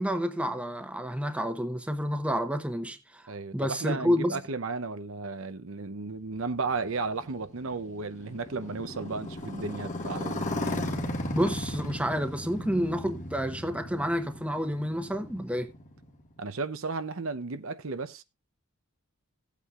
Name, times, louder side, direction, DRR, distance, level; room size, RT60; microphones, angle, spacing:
voice 1, 0.0-4.4 11.3-15.7, equal, 5° right, 0.9 m, -29 dB
voice 2, 3.3-10.4 16.4-18.2, right 4 dB, 60° right, 0.7 m, -34 dB
Motorcycle, 6.4-16.3, left 1 dB, 35° left, 1.5 m, -36 dB
16.5 x 8.4 x 2.4 m
head